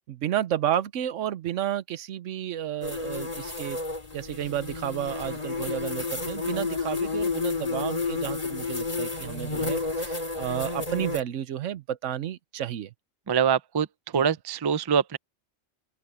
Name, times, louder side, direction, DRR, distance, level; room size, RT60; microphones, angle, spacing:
voice 1, 0.1-3.8 4.1-12.9 14.1-14.3, right 10 dB, 80° right, 1.1 m, -31 dB
sound 1, 2.8-11.2, left 4 dB, 30° left, 2.7 m, -31 dB
voice 2, 13.3-13.9 14.1-15.2, right 7 dB, 30° right, 0.4 m, -24 dB
open air
omnidirectional pair, 1.3 m